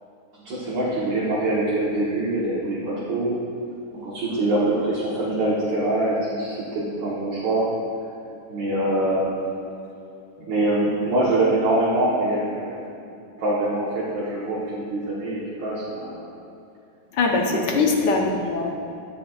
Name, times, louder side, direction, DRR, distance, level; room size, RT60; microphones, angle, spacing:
voice 1, 0.3-3.4 3.9-7.7 8.5-9.3 10.5-12.9 13.4-16.3 17.5-17.8, right 1 dB, 70° right, -7 dB, 1.9 m, -24 dB
voice 2, 17.1-18.7, left 4 dB, 65° left, 0 dB, 1.3 m, -22 dB
10.0 x 9.8 x 2.4 m, 2.7 s
omnidirectional pair, 2.1 m